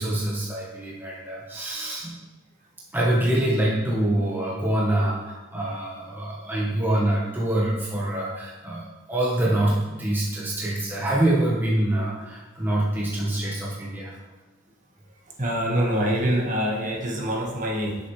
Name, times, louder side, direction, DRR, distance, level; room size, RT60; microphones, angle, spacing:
voice 1, 0.0-2.1 2.9-14.2, right 1 dB, 10° right, -5 dB, 1.0 m, -25 dB
voice 2, 15.4-18.0, equal, 40° right, -1 dB, 1.4 m, -25 dB
8.2 x 6.7 x 3.1 m, 1.2 s
head